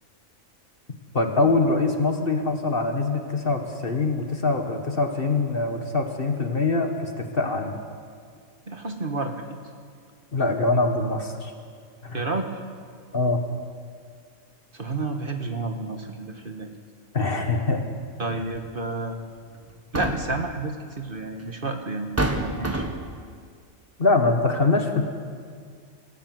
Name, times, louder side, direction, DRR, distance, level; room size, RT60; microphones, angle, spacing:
voice 1, 1.1-7.8 10.3-11.5 12.0-12.2 13.1-13.4 17.1-17.8 24.0-25.0, left 3 dB, 45° left, 5 dB, 1.9 m, -23 dB
voice 2, 8.7-9.3 12.1-12.5 14.7-16.7 18.2-19.2 19.9-22.9, right 3 dB, 40° right, 4 dB, 1.7 m, -30 dB
sound 1, 18.5-18.7 19.7-20.5 21.5-21.6 22.2-23.2, right 1 dB, 10° right, 1.4 m, -27 dB
26.5 x 15.5 x 7.9 m, 2.1 s
omnidirectional pair, 1.4 m